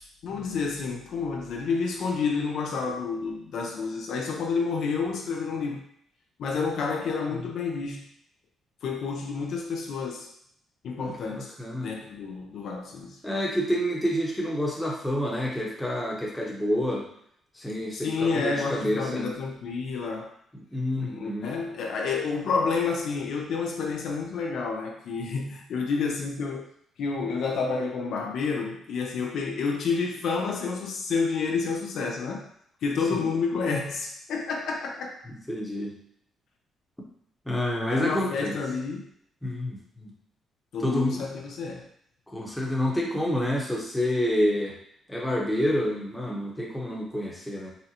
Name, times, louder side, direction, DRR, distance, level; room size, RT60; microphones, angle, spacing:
voice 1, 0.2-5.8 6.4-8.1 8.8-10.3 10.8-11.5 11.8-13.2 17.9-20.3 20.9-26.7 27.0-32.5 32.8-35.2 37.9-39.1 40.7-41.9, left 4 dB, 70° left, 1 dB, 0.5 m, -29 dB
voice 2, 11.0-11.9 13.2-17.1 17.6-19.4 20.7-21.5 33.1-33.3 35.3-36.0 37.5-38.6 39.4-40.1 40.8-41.2 42.3-44.8 45.1-47.7, equal, 5° left, -2 dB, 0.8 m, -28 dB
3.8 x 2.0 x 2.8 m, 0.69 s
cardioid pair, 90°, 0 cm